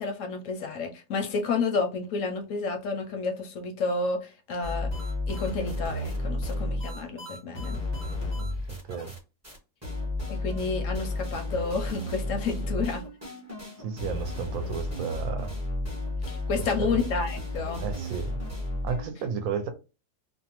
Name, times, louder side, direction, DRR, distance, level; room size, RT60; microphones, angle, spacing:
voice 1, 0.0-4.9 5.3-7.8 10.3-13.0 16.3-17.8, left 4 dB, 70° left, 0.8 m, -30 dB
sound 1, 4.6-9.2 9.4-9.6 9.8-19.1, left 1 dB, 15° right, 0.5 m, -33 dB
voice 2, 8.4-9.1 13.8-15.5 16.6-17.0 17.8-18.4 18.8-19.7, right 6 dB, 70° right, 0.9 m, -33 dB
2.7 x 2.1 x 2.8 m
omnidirectional pair, 1.7 m